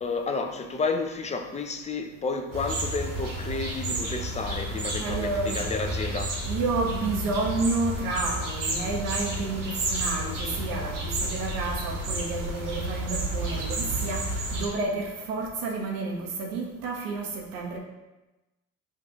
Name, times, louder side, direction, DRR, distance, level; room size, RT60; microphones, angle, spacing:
voice 1, 0.0-6.4, left 4 dB, 20° left, 0.5 m, -31 dB
sound 1, 2.5-14.7, right 1 dB, 65° right, 1.1 m, -31 dB
voice 2, 5.0-5.6 6.4-17.8, right 3 dB, 80° right, 0.8 m, -30 dB
5.8 x 2.5 x 2.8 m
hypercardioid pair, 55°, 35 cm